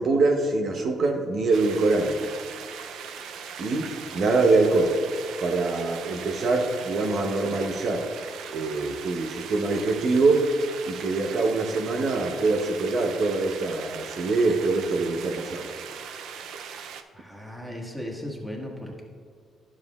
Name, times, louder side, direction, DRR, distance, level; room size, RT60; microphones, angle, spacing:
voice 1, 0.0-2.3 3.6-5.0 5.4-8.0 8.5-10.4 10.9-15.7, right 3 dB, 60° right, 2 dB, 0.8 m, -24 dB
sound 1, 1.5-17.0, right 7 dB, 85° right, 0.4 m, -39 dB
voice 2, 17.1-19.0, left 1 dB, 5° right, -1 dB, 1.5 m, -36 dB
10.5 x 7.3 x 2.4 m, 2.2 s
cardioid pair, 90°, 0 cm